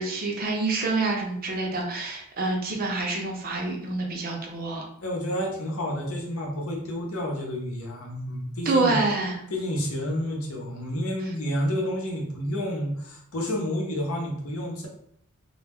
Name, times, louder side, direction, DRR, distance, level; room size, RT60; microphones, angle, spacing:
voice 1, 0.0-4.9 8.7-9.4, right 3 dB, 45° right, 1 dB, 0.5 m, -27 dB
voice 2, 5.0-9.0 9.5-14.9, equal, 70° left, 0 dB, 0.7 m, -30 dB
2.2 x 2.0 x 3.3 m, 0.70 s
head